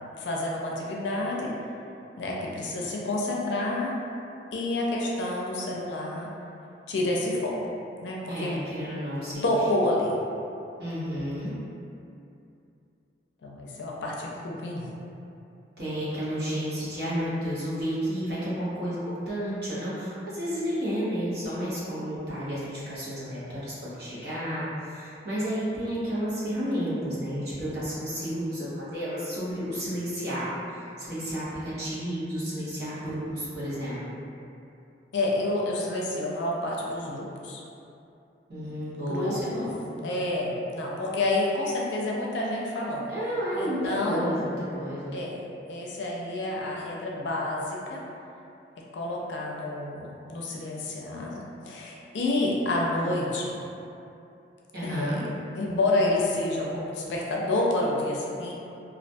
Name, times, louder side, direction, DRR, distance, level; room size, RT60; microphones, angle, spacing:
voice 1, 0.2-1.5 2.2-3.9 4.5-6.3 6.9-7.7 8.0-8.6 9.4-10.2 13.4-14.8 35.1-37.6 38.5-38.7 39.1-39.7 40.0-43.1 43.6-44.3 45.1-45.4 45.7-48.0 48.9-53.6 54.8-55.2 55.5-58.5, left 2 dB, 85° left, -3 dB, 0.4 m, -29 dB
voice 2, 8.3-9.5 10.8-11.5 15.8-34.2 38.5-40.0 43.1-45.1 54.7-55.2, equal, 60° right, -10 dB, 0.8 m, -31 dB
2.4 x 2.2 x 2.6 m, 2.7 s
head